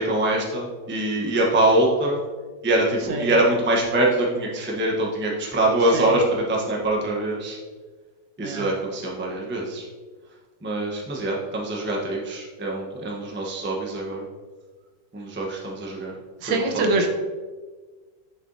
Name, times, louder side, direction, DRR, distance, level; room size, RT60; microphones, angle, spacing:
voice 1, 0.0-2.2 2.6-7.6 8.4-9.8 10.6-14.2 15.1-16.1 16.4-17.1, right 1 dB, 10° right, -2 dB, 0.5 m, -24 dB
voice 2, 16.4-17.1, right 2 dB, 75° right, 4 dB, 1.5 m, -24 dB
6.9 x 6.3 x 2.7 m, 1.4 s
omnidirectional pair, 2.0 m